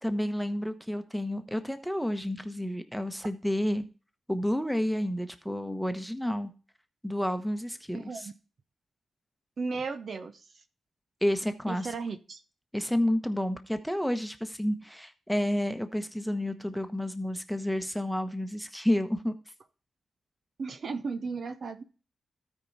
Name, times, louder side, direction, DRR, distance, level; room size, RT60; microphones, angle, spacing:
voice 1, 0.0-3.8 4.3-6.5 7.0-8.3 11.2-11.9 12.7-19.3, left 1 dB, ahead, 8 dB, 1.1 m, -30 dB
voice 2, 7.9-8.3 9.6-10.5 11.7-12.4 20.6-21.8, right 4 dB, 60° right, 9 dB, 0.7 m, -35 dB
13.0 x 4.7 x 4.1 m, 0.35 s
supercardioid pair, 45°, 0 cm